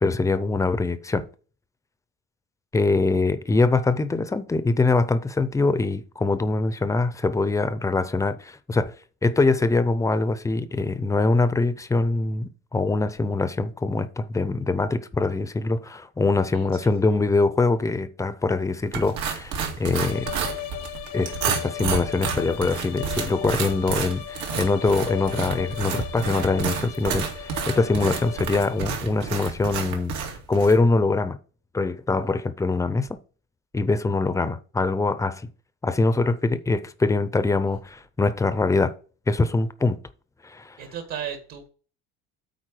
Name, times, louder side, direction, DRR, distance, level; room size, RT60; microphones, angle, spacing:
voice 1, 0.0-1.3 2.7-8.9 9.2-20.3 21.1-30.1 30.5-31.4 31.7-33.2 33.7-35.4 35.8-38.9 39.3-40.0 40.4-40.8, left 3 dB, 10° left, 0.5 m, -23 dB
voice 2, 16.5-17.2 40.8-41.7, right 8 dB, 65° right, 2.0 m, -36 dB
sound 1, 18.9-30.8, right 6 dB, 85° right, 2.1 m, -30 dB
sound 2, 19.9-29.1, left 13 dB, 80° left, 1.1 m, -37 dB
9.1 x 4.0 x 6.3 m
cardioid pair, 140°, 30 cm